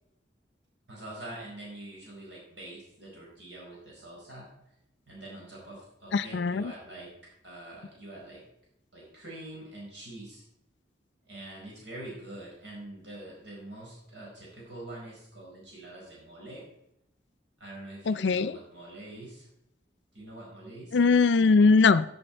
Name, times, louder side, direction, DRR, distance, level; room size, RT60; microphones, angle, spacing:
voice 1, 0.9-4.5 5.1-7.1 7.4-8.4 8.9-10.4 11.3-16.6 17.6-19.5 20.1-21.0, right 1 dB, 80° right, -4 dB, 4.7 m, -45 dB
voice 2, 6.1-6.7 18.1-18.6 20.9-22.0, left 4 dB, 75° left, 15 dB, 0.5 m, -21 dB
16.0 x 7.8 x 4.4 m, 0.80 s
head